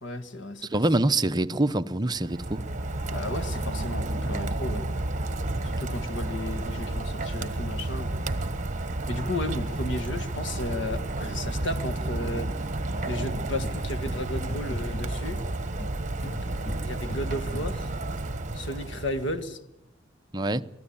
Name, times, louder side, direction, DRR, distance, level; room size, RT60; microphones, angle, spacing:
voice 1, 0.0-0.8 3.1-4.9 5.6-8.3 9.1-12.5 13.1-15.4 16.8-17.9 18.5-19.6, left 1 dB, 65° left, 1.8 m, -34 dB
voice 2, 0.7-2.6 20.3-20.6, right 2 dB, 20° right, 0.7 m, -25 dB
Rain, 2.1-19.4, right 2 dB, 40° right, 1.4 m, -31 dB
sound 1, 12.9-15.9 16.2-17.8, left 2 dB, 35° left, 0.9 m, -41 dB
23.5 x 15.5 x 8.7 m
head